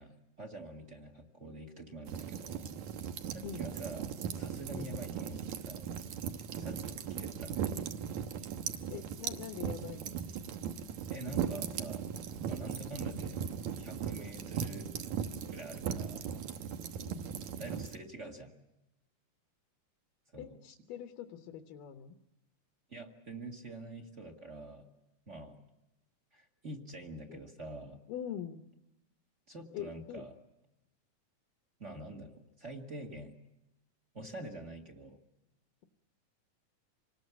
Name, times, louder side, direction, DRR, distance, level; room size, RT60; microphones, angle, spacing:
voice 1, 0.0-2.8 3.3-5.4 5.7-5.9 6.6-7.8 11.1-12.1 12.5-13.4 13.8-14.9 15.5-16.3 17.6-18.5 20.3-20.6 22.9-24.8 25.3-25.6 26.3-28.0 29.5-30.3 31.8-33.3 34.1-35.2, right 2 dB, 25° right, 4 dB, 1.7 m, -46 dB
sound 1, 2.1-18.0, right 8 dB, 70° right, 2.3 m, -38 dB
voice 2, 8.9-10.2 17.0-17.3 20.4-22.1 27.3-27.4 28.1-28.7 29.7-30.2, left 9 dB, 85° left, 6 dB, 2.8 m, -43 dB
26.5 x 20.0 x 8.3 m, 0.93 s
omnidirectional pair, 3.7 m